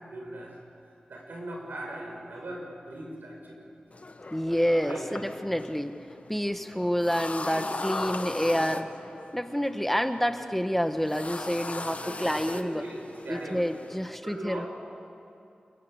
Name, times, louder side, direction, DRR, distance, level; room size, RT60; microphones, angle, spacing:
voice 1, 0.1-0.6 1.1-3.6 4.8-5.2 7.4-7.7 7.9-8.2 11.7-13.8 14.2-14.7, right 1 dB, 80° right, 0 dB, 6.7 m, -39 dB
sound 1, 3.9-14.1, left 2 dB, 45° left, 1.5 m, -39 dB
voice 2, 4.3-6.0 6.3-8.9 9.3-12.8 13.3-14.7, equal, 5° left, 8 dB, 1.4 m, -28 dB
28.0 x 23.0 x 8.0 m, 2.6 s
cardioid pair, 40°, 3 cm